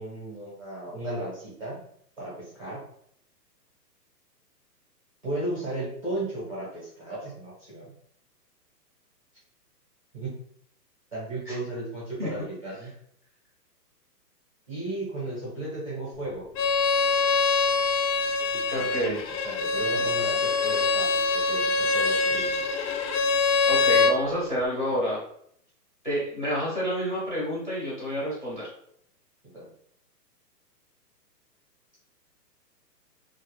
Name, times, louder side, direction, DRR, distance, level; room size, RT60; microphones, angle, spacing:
voice 1, 0.0-1.8 2.2-2.8 5.2-7.9 10.1-10.3 11.1-12.9 14.7-16.4 18.5-22.6 29.4-29.7, right 1 dB, 20° right, -8 dB, 0.6 m, -35 dB
Bowed string instrument, 16.5-24.2, left 4 dB, 85° left, 0.6 m, -24 dB
voice 2, 18.7-19.2 20.0-20.1 23.7-25.2 26.0-28.7, equal, 30° left, -7 dB, 0.5 m, -29 dB
2.3 x 2.1 x 2.9 m, 0.67 s
hypercardioid pair, 175°, 50 cm